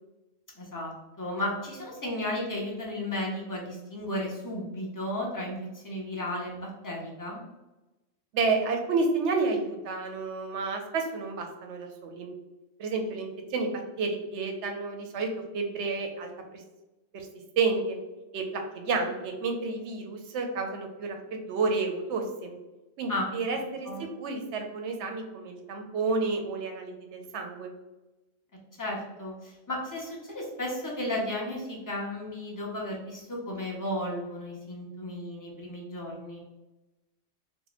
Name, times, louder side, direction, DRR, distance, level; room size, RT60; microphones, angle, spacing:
voice 1, 0.6-0.9 1.2-7.4 23.1-23.3 23.9-24.0 28.8-36.4, left 1 dB, 25° left, -3 dB, 0.5 m, -34 dB
voice 2, 8.3-12.4 12.8-16.6 17.1-17.3 17.6-18.0 18.3-22.5 23.0-27.7, right 4 dB, 70° right, 3 dB, 0.8 m, -30 dB
2.9 x 2.1 x 3.9 m, 1.0 s
omnidirectional pair, 1.3 m